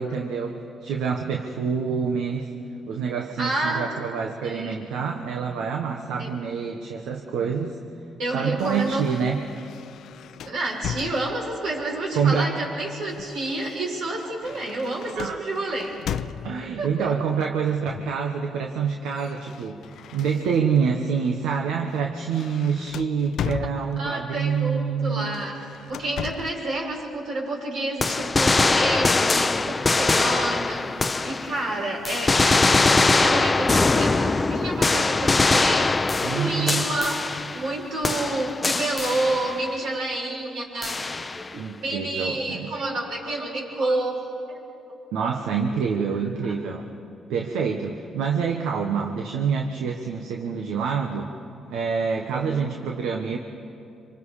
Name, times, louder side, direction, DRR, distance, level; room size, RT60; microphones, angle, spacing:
voice 1, 0.0-2.5 2.9-7.8 8.3-9.4 12.1-12.5 15.1-15.7 16.4-19.8 20.1-25.4 36.2-36.9 41.6-42.7 45.1-46.9 47.3-51.3 51.7-53.4, right 6 dB, 90° right, 2 dB, 1.3 m, -26 dB
voice 2, 3.4-3.8 4.4-4.7 6.2-6.3 8.2-9.0 10.4-15.9 16.8-17.1 23.4-23.5 24.0-25.6 25.9-35.9 36.2-41.0 41.3-44.2 44.5-44.6 46.2-46.3, right 2 dB, 70° right, -2 dB, 6.6 m, -29 dB
sound 1, 8.6-11.7 12.6-16.8 17.9-18.2 18.5-20.8 21.3-21.5 21.9-24.3 25.2-26.7, left 9 dB, 70° left, 0.5 m, -37 dB
sound 2, 28.0-31.7 32.0-37.8 38.0-39.7 40.8-41.5, left 3 dB, 25° left, 0.6 m, -22 dB
26.5 x 25.0 x 5.0 m, 2.7 s
cardioid pair, 90°, 0 cm